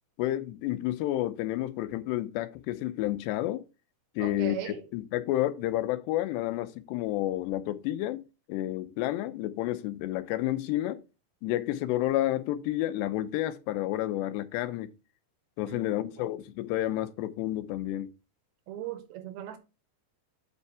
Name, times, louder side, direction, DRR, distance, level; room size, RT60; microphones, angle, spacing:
voice 1, 0.2-3.6 4.2-8.2 8.5-11.0 11.4-14.9 15.6-18.1, left 14 dB, 90° left, 2.9 m, -30 dB
voice 2, 4.2-4.8 15.6-16.3 18.7-19.6, right 12 dB, 80° right, 2.5 m, -39 dB
8.8 x 5.5 x 3.4 m
omnidirectional pair, 4.9 m